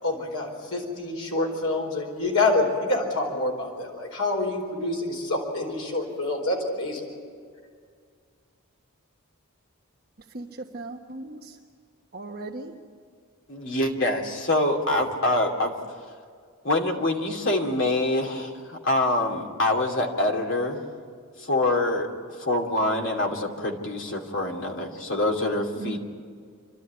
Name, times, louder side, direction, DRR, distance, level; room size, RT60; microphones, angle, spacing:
voice 1, 0.0-7.1, left 2 dB, 80° left, 0 dB, 4.6 m, -27 dB
voice 2, 10.3-11.6 12.1-12.7 25.8-26.0, right 2 dB, 45° right, 0 dB, 1.2 m, -37 dB
voice 3, 13.5-15.7 16.6-20.8 21.4-22.1 22.4-26.0, left 2 dB, 60° left, 1 dB, 2.7 m, -25 dB
28.5 x 12.5 x 9.6 m, 2.1 s
head